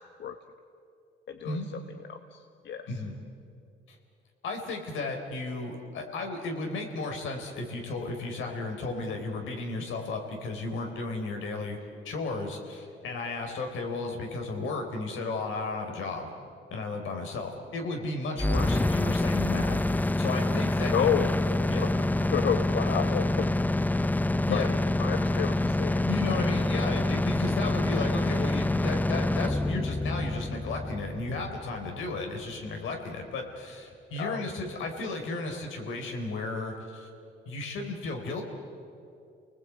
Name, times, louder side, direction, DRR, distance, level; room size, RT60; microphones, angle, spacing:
voice 1, 1.3-1.8 2.1-2.9 20.9-21.3 21.7-23.5 24.5-24.7 25.0-26.0 34.2-34.4, left 8 dB, 60° left, 7 dB, 1.2 m, -31 dB
voice 2, 4.4-11.8 12.0-16.3 16.7-21.2 21.7-21.9 24.5-24.7 26.0-37.1 37.5-38.4, left 3 dB, 80° left, 3 dB, 3.9 m, -34 dB
sound 1, 18.4-32.3, left 1 dB, 10° left, 0.5 m, -27 dB
30.0 x 19.5 x 8.4 m, 2.6 s
cardioid pair, 90°, 20 cm